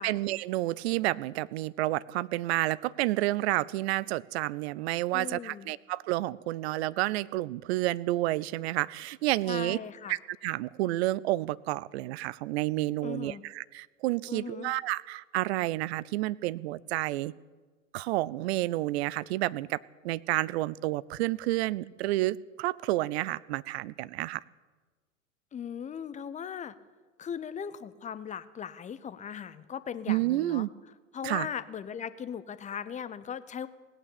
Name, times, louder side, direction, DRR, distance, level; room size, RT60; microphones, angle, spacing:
voice 1, 0.0-9.8 10.1-17.3 17.9-19.8 20.0-24.4 30.1-30.7 31.2-31.5, right 17 dB, 50° right, 21 dB, 0.5 m, -30 dB
voice 2, 5.1-5.7 9.5-10.1 13.0-13.4 14.3-14.7 25.5-26.7 27.2-30.7 31.1-33.7, left 8 dB, 20° left, 14 dB, 0.7 m, -38 dB
17.5 x 8.9 x 8.7 m, 1.3 s
figure-of-eight pair, 85°, 41 cm